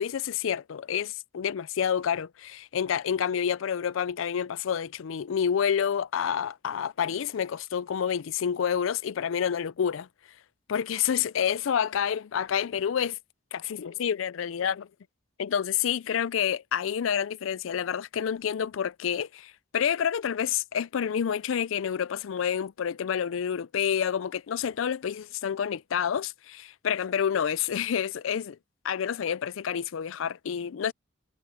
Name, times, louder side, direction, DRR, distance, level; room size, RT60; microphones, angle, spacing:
voice 1, 0.0-10.1 10.7-13.2 13.5-14.9 15.4-28.6 28.8-30.9, left 8 dB, 80° left, 0.4 m, -28 dB
head